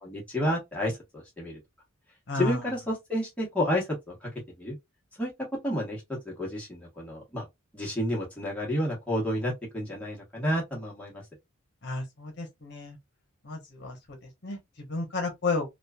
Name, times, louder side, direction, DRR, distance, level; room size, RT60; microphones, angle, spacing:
voice 1, 0.0-1.6 2.3-4.3 4.6-4.8 5.2-5.3 5.6-7.5 7.7-11.2, equal, 5° left, 1.1 m, -30 dB
voice 2, 2.3-2.6 11.8-13.0 13.4-14.0 14.4-15.6, left 3 dB, 55° left, 0.9 m, -32 dB
3.0 x 2.3 x 2.3 m
head